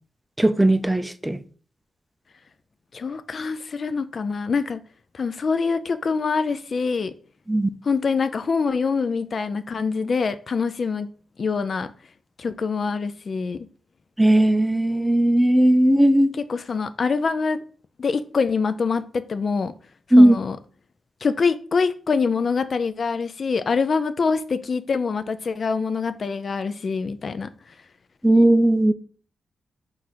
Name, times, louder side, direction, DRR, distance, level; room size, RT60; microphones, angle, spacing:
voice 1, 0.4-1.4 7.5-7.7 14.2-16.3 20.1-20.3 28.2-28.9, right 1 dB, 10° right, 0.4 m, -16 dB
voice 2, 2.9-4.8 5.1-7.1 7.8-11.1 11.4-11.9 12.4-13.7 16.5-17.6 18.0-19.7 20.2-20.6 21.2-27.5, left 5 dB, 60° left, 0.3 m, -25 dB
3.9 x 2.5 x 4.4 m
cardioid pair, 55°, 0 cm